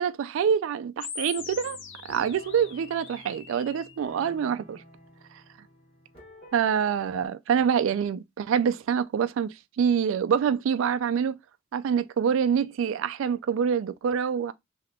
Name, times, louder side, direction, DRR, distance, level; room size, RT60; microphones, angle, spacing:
voice 1, 0.0-1.8 2.1-4.8 6.5-11.4 11.7-14.5, right 7 dB, 65° right, 0.3 m, -26 dB
sound 1, 1.0-4.0, left 6 dB, 60° left, 0.6 m, -41 dB
sound 2, 1.3-7.3, equal, 30° left, 1.5 m, -50 dB
3.5 x 2.8 x 3.4 m
head